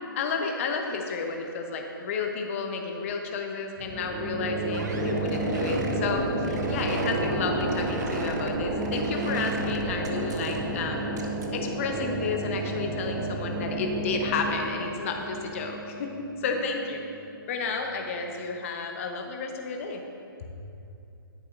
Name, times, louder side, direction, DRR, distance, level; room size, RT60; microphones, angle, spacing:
voice 1, 0.1-11.1 11.5-17.0 17.5-20.0, left 4 dB, 35° left, 3 dB, 0.9 m, -31 dB
sound 1, 3.8-17.2, right 2 dB, 10° right, 0.5 m, -31 dB
sound 2, 4.7-11.5, right 4 dB, 50° right, 0.7 m, -40 dB
10.5 x 8.3 x 2.6 m, 2.7 s
hypercardioid pair, 150°, 12 cm